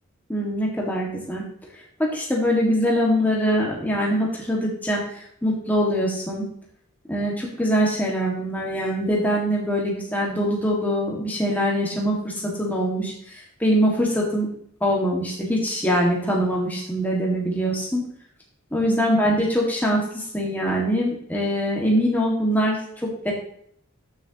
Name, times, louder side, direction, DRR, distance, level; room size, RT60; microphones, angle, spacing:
voice 1, 0.3-1.4 2.0-6.5 7.1-14.5 14.8-18.0 18.7-23.3, equal, 10° left, -3 dB, 1.9 m, -23 dB
14.5 x 6.5 x 3.0 m, 0.68 s
head